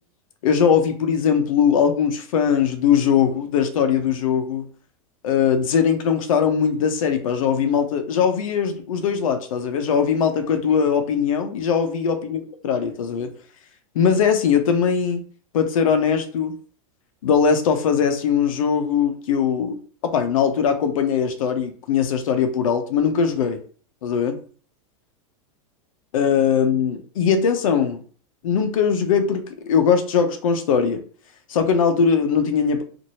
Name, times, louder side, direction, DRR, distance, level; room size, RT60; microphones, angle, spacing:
voice 1, 0.4-4.6 5.2-13.3 13.9-15.2 15.5-16.5 17.2-19.8 20.1-23.6 24.0-24.4 26.1-28.0 28.4-31.0 31.5-32.8, left 7 dB, 80° left, 7 dB, 0.7 m, -20 dB
3.0 x 2.5 x 2.8 m, 0.43 s
supercardioid pair, 175°, 17 cm